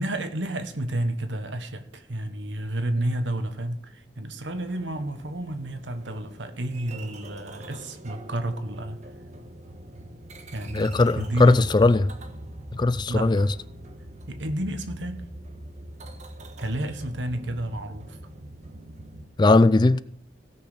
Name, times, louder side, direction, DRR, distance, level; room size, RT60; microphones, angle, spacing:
voice 1, 0.0-9.0 10.5-11.7 13.1-13.5 14.3-15.2 16.6-18.2, right 1 dB, 85° right, 1.4 m, -31 dB
sound 1, 4.5-19.2, right 1 dB, 40° right, 1.3 m, -42 dB
voice 2, 10.7-12.1 12.7-13.5 19.4-20.0, left 2 dB, 25° left, 0.4 m, -19 dB
17.0 x 6.2 x 5.0 m
head